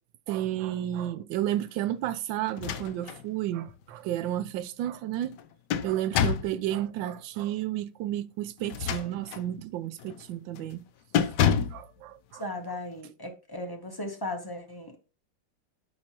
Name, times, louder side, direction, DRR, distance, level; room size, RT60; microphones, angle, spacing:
voice 1, 0.3-5.3 5.8-10.8 11.7-12.4, right 12 dB, 80° right, 1.3 m, -32 dB
sound 1, 2.5-3.2 3.7-3.8 5.2-6.6 8.6-9.5 10.0-10.2 10.6-10.8 11.1-11.8, left 8 dB, 75° left, 1.1 m, -28 dB
voice 2, 12.3-15.0, left 1 dB, 20° left, 0.6 m, -37 dB
12.0 x 4.6 x 2.9 m
omnidirectional pair, 2.0 m